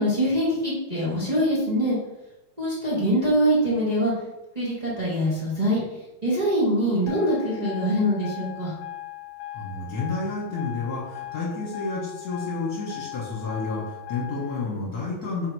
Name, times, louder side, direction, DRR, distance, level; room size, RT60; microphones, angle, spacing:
voice 1, 0.0-2.0 2.6-4.1 4.5-5.8 6.2-8.7, equal, 25° right, -9 dB, 1.2 m, -23 dB
sound 1, 7.1-14.7, left 15 dB, 75° left, 1.2 m, -39 dB
voice 2, 9.5-15.5, left 3 dB, 55° left, -5 dB, 1.6 m, -30 dB
4.1 x 2.8 x 4.5 m, 0.93 s
omnidirectional pair, 2.2 m